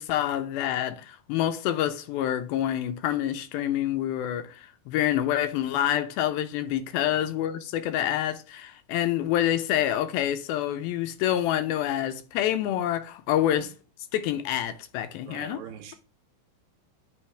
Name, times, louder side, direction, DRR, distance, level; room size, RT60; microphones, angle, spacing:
voice 1, 0.0-13.7 14.1-15.6, left 11 dB, 80° left, 2.4 m, -27 dB
voice 2, 15.2-16.0, right 8 dB, 70° right, 2.3 m, -43 dB
9.4 x 3.4 x 3.3 m
omnidirectional pair, 4.4 m